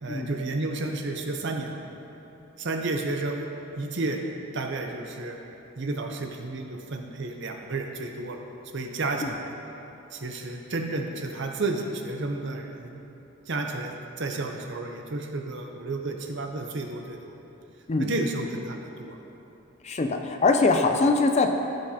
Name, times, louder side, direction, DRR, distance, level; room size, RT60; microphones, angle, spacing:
voice 1, 0.0-1.8 2.6-3.4 3.8-4.2 4.5-5.4 5.8-8.4 8.7-9.5 10.1-13.0 13.5-17.3 18.0-19.2, right 2 dB, 55° right, 3 dB, 0.7 m, -31 dB
voice 2, 19.8-21.6, left 3 dB, 30° left, 5 dB, 0.4 m, -23 dB
13.5 x 5.2 x 2.8 m, 3.0 s
head